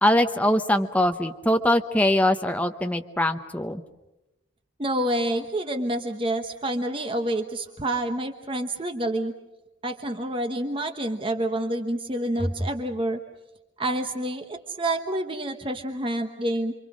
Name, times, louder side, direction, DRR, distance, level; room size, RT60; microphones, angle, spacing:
voice 1, 0.0-3.8, left 1 dB, 5° left, 6 dB, 0.9 m, -22 dB
voice 2, 4.8-9.3 9.8-13.2 13.8-16.7, right 1 dB, 25° right, 5 dB, 1.1 m, -28 dB
28.0 x 24.5 x 6.3 m, 0.99 s
head